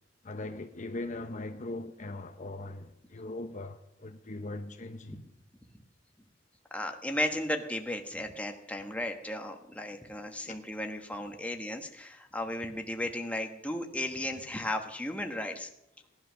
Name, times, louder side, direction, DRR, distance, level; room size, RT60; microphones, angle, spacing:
voice 1, 0.2-5.2 10.4-10.6, left 2 dB, 40° left, 0.8 m, -40 dB
voice 2, 6.7-15.7, left 1 dB, 5° left, 1.4 m, -35 dB
17.5 x 11.0 x 6.3 m
head